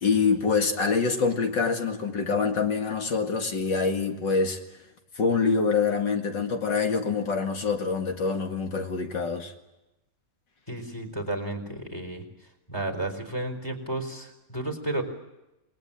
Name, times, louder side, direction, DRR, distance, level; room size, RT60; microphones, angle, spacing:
voice 1, 0.0-4.6 5.2-9.5, left 5 dB, 70° left, 4 dB, 2.7 m, -25 dB
voice 2, 10.7-12.2 12.7-15.0, right 2 dB, 10° left, 6 dB, 4.2 m, -32 dB
28.0 x 20.5 x 8.9 m, 0.98 s
omnidirectional pair, 2.0 m